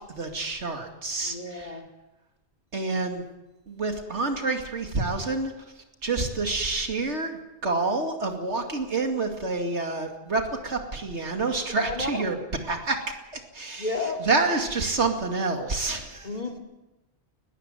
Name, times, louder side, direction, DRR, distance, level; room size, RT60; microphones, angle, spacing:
voice 1, 0.0-1.8 2.7-3.2 3.7-5.5 6.0-12.4 12.6-16.3, right 3 dB, 90° right, 4 dB, 2.7 m, -28 dB
voice 2, 1.2-1.9 11.7-12.2 13.8-14.2 16.2-16.6, left 3 dB, 40° left, 3 dB, 2.7 m, -32 dB
20.5 x 14.5 x 9.1 m, 1.0 s
omnidirectional pair, 1.1 m